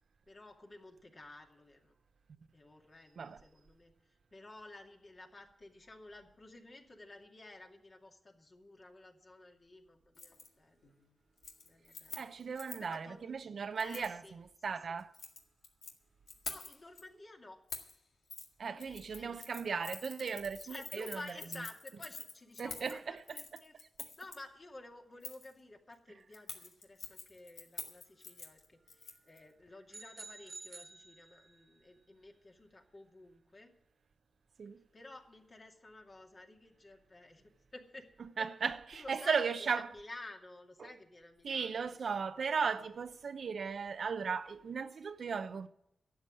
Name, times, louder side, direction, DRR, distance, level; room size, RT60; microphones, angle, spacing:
voice 1, 0.3-1.9 2.5-3.9 4.3-10.9 11.6-12.2 12.8-13.3 13.8-14.3 14.7-15.0 16.5-17.6 18.6-19.5 20.6-23.7 24.2-33.7 34.9-38.1 38.4-38.5 38.9-42.5, left 2 dB, 45° left, 2.4 m, -52 dB
Keys jangling, 10.1-10.5 10.8-11.1 11.4-12.9 13.8-14.1 15.0-15.9 16.3-17.0 17.7-18.0 18.3-18.5 18.8-24.4 25.2-25.5 26.3-29.4 29.7-29.8, left 4 dB, 80° left, 1.9 m, -47 dB
voice 2, 12.2-15.1 18.6-21.2 22.6-24.1 34.6-34.8 38.2-39.9 40.8-40.9 41.4-45.7, right 5 dB, 70° right, 0.7 m, -37 dB
sound 1, 29.9-31.7, right 3 dB, 45° right, 1.3 m, -51 dB
12.0 x 8.2 x 9.8 m
cardioid pair, 60°, 0 cm